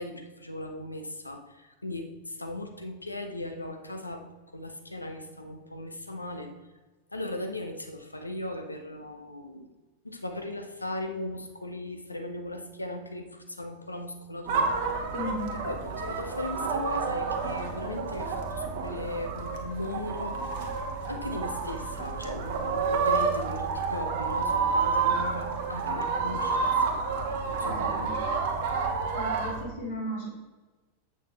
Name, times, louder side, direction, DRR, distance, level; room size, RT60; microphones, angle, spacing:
voice 1, 0.0-4.2 4.5-6.5 7.1-9.7 10.0-14.7 15.6-20.4 21.1-27.0 27.5-28.4, left 1 dB, 85° left, 5 dB, 0.8 m, -37 dB
sound 1, 14.5-29.6, right 4 dB, 50° right, 1.0 m, -29 dB
voice 2, 15.1-15.6 27.7-28.1 29.1-30.3, left 1 dB, 60° left, -5 dB, 2.6 m, -35 dB
7.8 x 6.5 x 3.4 m, 1.2 s
figure-of-eight pair, 90°, 0 cm